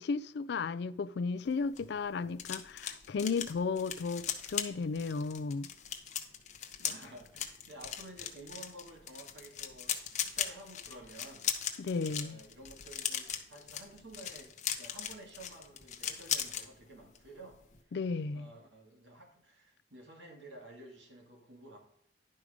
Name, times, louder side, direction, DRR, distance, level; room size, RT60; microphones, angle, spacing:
voice 1, 0.0-5.7 11.8-12.4 17.9-18.5, left 4 dB, 65° left, 0.4 m, -34 dB
sound 1, 1.5-16.7 17.0-17.3 17.5-17.8, left 9 dB, 40° left, 0.9 m, -39 dB
voice 2, 6.8-11.5 12.0-17.6 17.9-18.0 18.3-21.8, right 1 dB, 85° right, 2.3 m, -52 dB
11.0 x 4.9 x 5.0 m
head